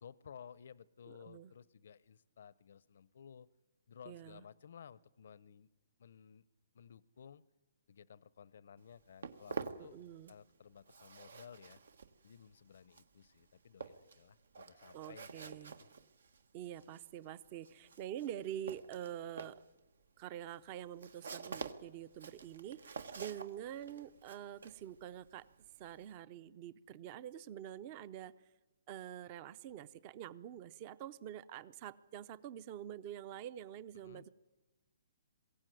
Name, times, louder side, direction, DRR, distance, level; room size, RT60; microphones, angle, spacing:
voice 1, 0.0-3.5 3.9-5.7 6.0-6.5 6.7-7.4 7.9-10.0 10.3-11.8 12.2-15.9 33.9-34.3, left 7 dB, 65° left, 20 dB, 0.6 m, -56 dB
voice 2, 1.1-1.5 4.1-4.4 9.8-10.3 14.9-15.7 16.5-19.6 20.2-25.5 25.8-28.3 28.9-34.3, right 11 dB, 30° right, 18 dB, 0.6 m, -46 dB
Walk footsteps, 8.8-10.5 10.8-26.2, right 5 dB, 80° right, 1.4 m, -49 dB
22.0 x 16.0 x 9.2 m, 1.1 s
hypercardioid pair, 155°, 0 cm